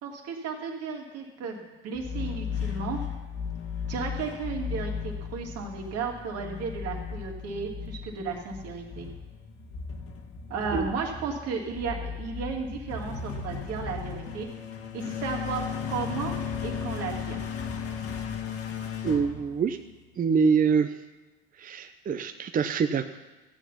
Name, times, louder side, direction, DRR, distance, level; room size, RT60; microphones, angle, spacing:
voice 1, 0.0-3.0 3.9-9.1 10.5-14.5 14.9-15.6 15.9-16.3 16.6-17.5, right 5 dB, 55° right, 1 dB, 2.6 m, -34 dB
sound 1, 1.9-20.1, left 7 dB, 50° left, 1.8 m, -36 dB
voice 2, 19.0-19.8 20.2-20.9 21.6-23.2, right 6 dB, 30° right, 8 dB, 0.7 m, -25 dB
15.0 x 8.0 x 5.8 m, 1.1 s
hypercardioid pair, 85°, 29 cm